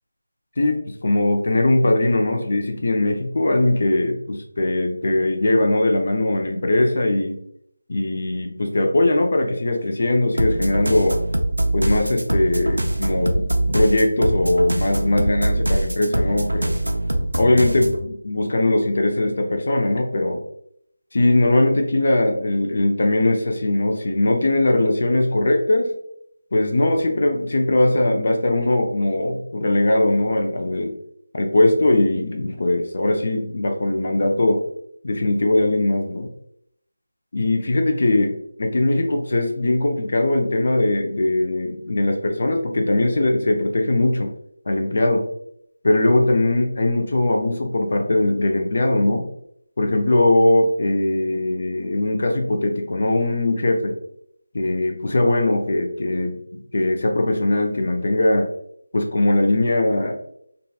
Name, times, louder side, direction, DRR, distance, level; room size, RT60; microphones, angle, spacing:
voice 1, 0.6-7.4 7.9-11.2 11.7-16.7 17.4-20.4 21.1-25.9 26.5-31.0 31.3-34.6 35.0-36.3 37.3-44.3 44.7-45.3 45.8-49.3 49.8-54.0 54.5-58.5 58.9-60.1, left 2 dB, 45° left, 3 dB, 0.5 m, -20 dB
sound 1, 10.4-18.0, right 1 dB, 80° right, 0.5 m, -23 dB
3.9 x 2.2 x 2.3 m, 0.70 s
figure-of-eight pair, 165°, 0 cm